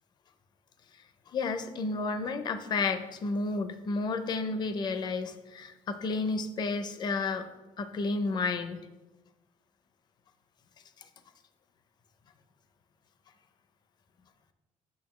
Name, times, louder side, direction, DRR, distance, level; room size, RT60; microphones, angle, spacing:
voice 1, 1.3-7.5 7.8-8.9, left 3 dB, 35° left, 11 dB, 0.5 m, -31 dB
8.5 x 6.4 x 3.1 m, 1.1 s
cardioid pair, 170°, 13 cm